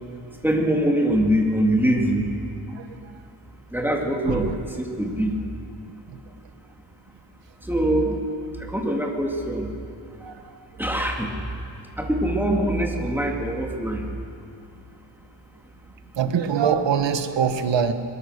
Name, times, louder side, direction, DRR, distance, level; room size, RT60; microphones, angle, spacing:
voice 1, 0.4-2.3 3.7-4.5 4.8-5.3 7.7-8.2 8.6-9.7 10.8-11.3 12.0-14.0, right 1 dB, 5° right, 0 dB, 2.7 m, -23 dB
voice 2, 16.2-17.9, right 7 dB, 90° right, 8 dB, 1.5 m, -23 dB
22.0 x 20.5 x 6.7 m, 2.6 s
wide cardioid pair, 120°, 43 cm